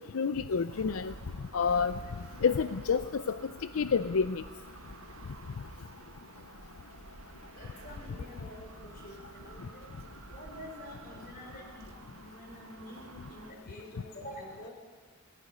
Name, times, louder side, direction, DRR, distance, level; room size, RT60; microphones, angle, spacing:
voice 1, 0.1-1.1 1.5-1.9 2.4-3.4 3.8-4.4, left 6 dB, 80° left, 12 dB, 0.5 m, -28 dB
sound 1, 0.7-13.5, right 2 dB, 85° right, 1.6 m, -50 dB
voice 2, 7.6-9.9 10.3-14.7, left 1 dB, 45° left, 1 dB, 5.7 m, -48 dB
18.5 x 17.0 x 9.6 m, 1.5 s
head